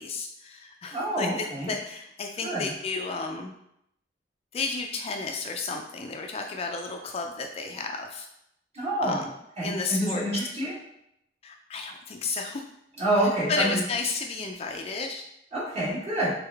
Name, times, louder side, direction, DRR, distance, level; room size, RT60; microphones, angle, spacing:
voice 1, 0.0-3.5 4.5-8.3 9.0-9.3 9.6-10.2 11.4-12.6 13.2-15.3, left 4 dB, 35° left, 3 dB, 0.3 m, -32 dB
voice 2, 0.9-1.7 2.4-2.7 8.7-9.2 9.6-10.7 13.0-13.8 15.5-16.3, right 1 dB, 35° right, -7 dB, 1.6 m, -27 dB
3.7 x 3.4 x 3.4 m, 0.79 s
head